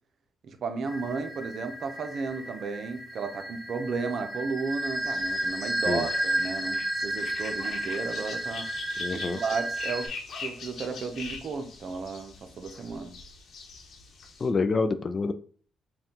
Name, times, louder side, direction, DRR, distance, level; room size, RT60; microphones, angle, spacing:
voice 1, 0.4-8.7 9.1-13.2, right 4 dB, 55° right, 7 dB, 0.6 m, -34 dB
sound 1, 0.9-10.1, right 1 dB, 5° left, 0.9 m, -33 dB
sound 2, 5.0-14.5, left 4 dB, 60° left, 0.9 m, -43 dB
voice 2, 9.0-9.4 14.4-15.3, left 4 dB, 35° left, 11 dB, 0.4 m, -27 dB
4.2 x 2.3 x 3.7 m, 0.43 s
cardioid pair, 90°, 0 cm